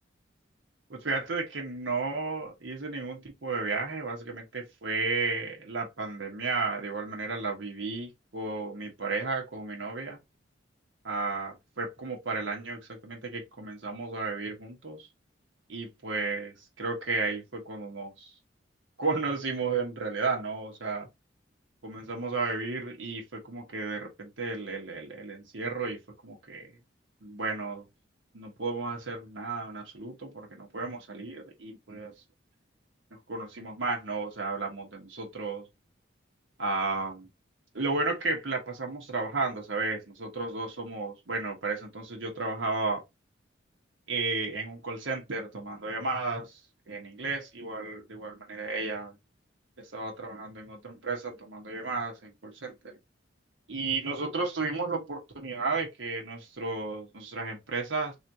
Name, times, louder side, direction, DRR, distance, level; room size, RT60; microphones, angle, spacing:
voice 1, 0.9-10.2 11.0-15.1 15.7-18.3 19.0-21.1 21.8-26.0 26.2-26.8 27.2-27.8 28.3-32.1 33.3-35.6 36.6-37.3 37.7-43.0 44.1-46.6 46.9-49.2 49.8-53.0 53.7-58.2, right 3 dB, 80° right, 1.2 m, -33 dB
3.6 x 3.2 x 2.8 m
head